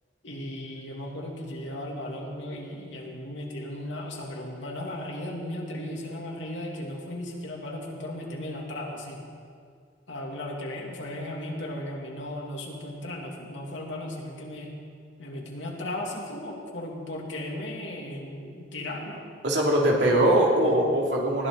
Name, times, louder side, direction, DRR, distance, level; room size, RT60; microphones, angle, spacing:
voice 1, 0.2-9.2 10.1-14.7 15.2-19.2 19.8-20.1, left 1 dB, 85° left, -1 dB, 2.8 m, -36 dB
voice 2, 19.4-21.5, right 1 dB, 70° right, -2 dB, 2.8 m, -21 dB
20.0 x 14.0 x 4.0 m, 2.1 s
head